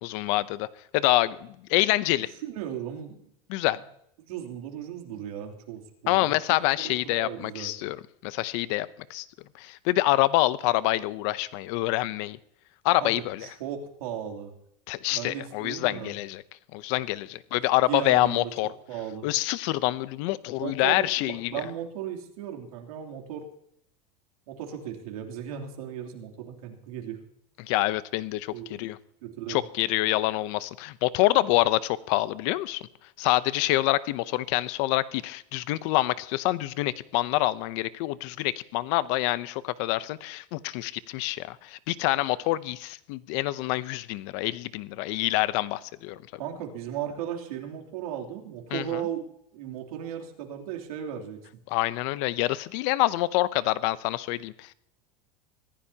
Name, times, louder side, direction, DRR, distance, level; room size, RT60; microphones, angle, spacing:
voice 1, 0.0-0.7 0.9-2.3 3.5-3.8 6.1-8.0 8.2-9.3 9.6-12.4 12.8-13.5 14.9-16.4 16.7-18.7 19.2-21.6 27.6-29.0 29.5-32.8 33.2-46.2 48.7-49.0 51.7-54.7, left 17 dB, 55° left, 16 dB, 0.7 m, -26 dB
voice 2, 2.4-3.2 4.2-6.3 6.8-7.7 13.0-13.1 13.4-14.5 15.1-16.1 17.9-18.5 18.9-19.3 20.5-23.5 24.5-27.2 28.5-28.8 29.2-29.6 46.4-49.2 49.5-51.4, right 10 dB, 90° right, 1 dB, 3.1 m, -36 dB
24.5 x 15.0 x 2.9 m, 0.73 s
supercardioid pair, 155°, 18 cm